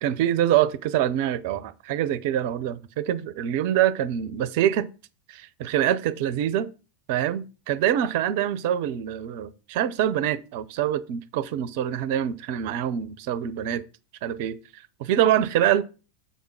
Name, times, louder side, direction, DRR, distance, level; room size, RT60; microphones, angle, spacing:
voice 1, 0.0-4.9 5.3-6.7 7.1-13.8 14.2-15.8, right 11 dB, 55° right, 0.6 m, -25 dB
7.0 x 3.6 x 6.0 m
figure-of-eight pair, 85°, 0 cm